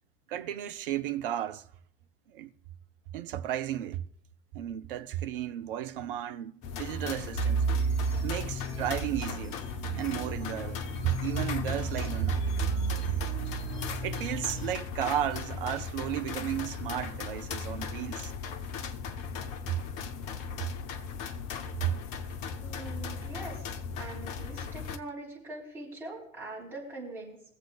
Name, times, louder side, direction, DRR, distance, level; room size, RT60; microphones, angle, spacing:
voice 1, 0.3-1.7 2.3-2.5 3.1-4.0 4.5-7.7 8.2-9.6 9.9-12.7 13.0-13.2 14.0-18.3 19.7-19.8 21.8-21.9, right 11 dB, 40° right, 0.7 m, -33 dB
sound 1, 6.6-25.0, left 5 dB, 30° left, 0.8 m, -38 dB
sound 2, 7.3-14.7, right 4 dB, 50° left, 2.6 m, -33 dB
voice 2, 22.6-23.6 24.0-27.4, right 2 dB, 5° right, 4.3 m, -42 dB
22.5 x 7.7 x 2.4 m
figure-of-eight pair, 105°, 40 cm